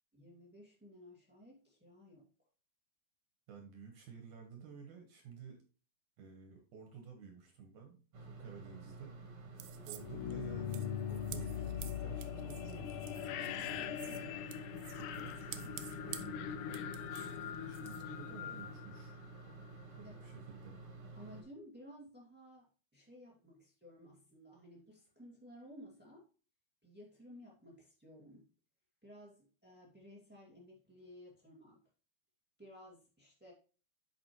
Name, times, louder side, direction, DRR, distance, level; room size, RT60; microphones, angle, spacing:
voice 1, 0.1-2.3 9.7-10.1 20.0-20.2 21.1-26.3 26.8-28.5 29.0-31.8 32.6-33.5, equal, 15° right, -3 dB, 0.4 m, -56 dB
voice 2, 3.5-5.6 6.2-9.2 9.9-14.4 14.9-16.9 17.7-19.2 19.9-20.8, right 6 dB, 65° right, 4 dB, 2.3 m, -53 dB
sound 1, 8.1-21.4, right 3 dB, 45° right, 2.0 m, -51 dB
sound 2, 9.6-18.8, right 13 dB, 80° right, 1.9 m, -52 dB
sound 3, 9.9-19.8, left 9 dB, 85° left, 1.8 m, -42 dB
8.6 x 6.3 x 3.0 m, 0.37 s
omnidirectional pair, 4.5 m